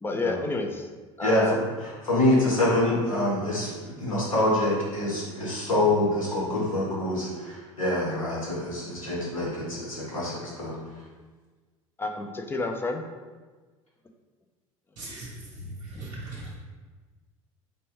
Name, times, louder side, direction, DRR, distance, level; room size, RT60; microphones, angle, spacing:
voice 1, 0.0-0.9 1.2-1.6 12.0-13.0 16.0-16.1 16.4-16.6, left 2 dB, 15° left, 3 dB, 0.4 m, -30 dB
voice 2, 1.2-1.6 2.0-10.8, left 1 dB, 80° left, -6 dB, 1.3 m, -26 dB
voice 3, 15.0-16.5, right 2 dB, 30° right, -4 dB, 1.0 m, -39 dB
4.2 x 3.1 x 3.0 m, 1.3 s
figure-of-eight pair, 70°, 17 cm